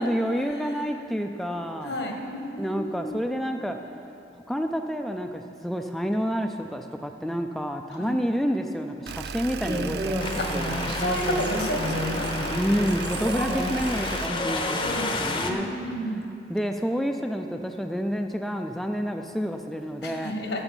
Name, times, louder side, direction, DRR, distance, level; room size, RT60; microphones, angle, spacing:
voice 1, 0.0-2.0 2.6-3.8 4.5-11.0 12.5-15.7 16.5-20.3, equal, ahead, 4 dB, 0.3 m, -29 dB
voice 2, 1.8-3.3 8.0-8.2 10.4-10.5 11.0-12.6 13.4-13.8 14.7-16.2 20.0-20.6, equal, 80° left, 2 dB, 1.5 m, -32 dB
sound 1, 9.1-14.3, right 5 dB, 65° right, 0.4 m, -35 dB
Human voice, 9.6-14.8, equal, 25° right, 1.0 m, -32 dB
Wind, 10.2-15.5, left 2 dB, 30° left, 0.7 m, -31 dB
9.9 x 7.8 x 7.2 m, 2.7 s
head